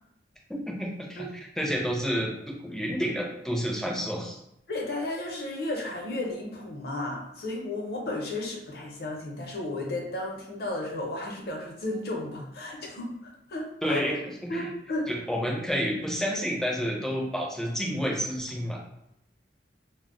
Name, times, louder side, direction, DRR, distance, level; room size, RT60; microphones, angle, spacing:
voice 1, 0.7-1.3 1.6-4.4 13.8-14.7 15.1-18.8, equal, 5° left, -2 dB, 0.4 m, -30 dB
voice 2, 4.7-14.1 14.5-15.2, left 2 dB, 60° left, -1 dB, 0.6 m, -33 dB
2.1 x 2.0 x 3.6 m, 0.79 s
head